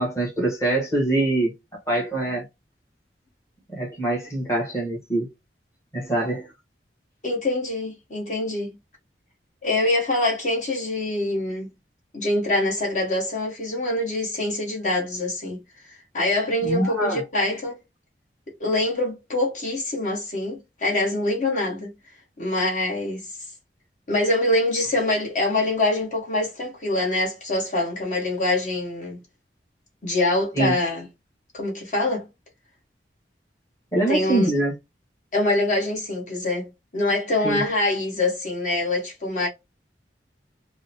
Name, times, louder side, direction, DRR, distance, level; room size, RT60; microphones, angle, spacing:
voice 1, 0.0-2.5 3.7-5.3 5.9-6.5 16.6-17.2 30.5-30.7 33.9-34.7 37.4-37.6, right 2 dB, 15° left, 1.1 m, -24 dB
voice 2, 7.2-8.7 9.6-11.7 12.1-15.6 15.9-17.8 18.6-21.9 22.4-23.4 24.1-29.2 30.0-31.0 31.5-32.3 34.1-34.5 35.3-39.5, left 2 dB, 45° left, 1.2 m, -24 dB
3.7 x 2.1 x 2.7 m
head